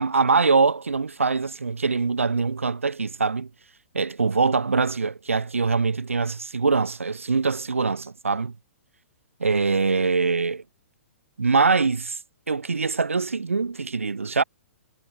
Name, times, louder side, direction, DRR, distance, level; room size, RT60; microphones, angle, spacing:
voice 1, 0.0-3.5 3.9-8.5 9.4-10.6 11.4-12.2 12.5-14.4, right 4 dB, 80° right, 4.4 m, -23 dB
figure-of-eight pair, 120°, 7 cm